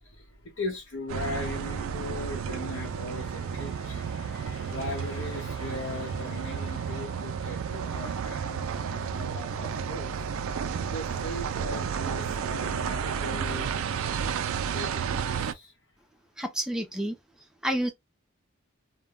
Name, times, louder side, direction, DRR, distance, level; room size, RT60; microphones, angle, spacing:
voice 1, 0.0-10.1 10.9-13.9 14.7-15.0 15.4-15.7, left 2 dB, 70° left, 0.8 m, -39 dB
sound 1, 1.1-15.5, right 7 dB, 80° right, 0.3 m, -32 dB
voice 2, 16.4-17.2 17.6-17.9, equal, 5° right, 0.4 m, -29 dB
2.2 x 2.1 x 3.4 m
head